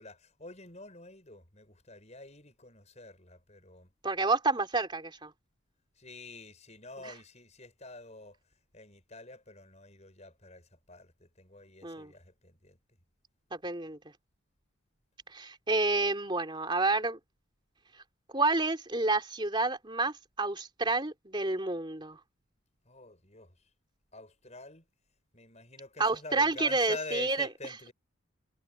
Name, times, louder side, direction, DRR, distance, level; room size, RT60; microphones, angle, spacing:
voice 1, 0.0-3.9 6.0-8.4 8.7-12.8 22.9-23.5 24.1-24.8 25.3-27.9, left 2 dB, 30° left, 6.5 m, -47 dB
voice 2, 4.0-5.3 7.0-7.1 11.8-12.1 13.6-14.0 15.3-17.2 18.3-22.2 26.0-27.5, right 3 dB, 20° right, 3.4 m, -29 dB
head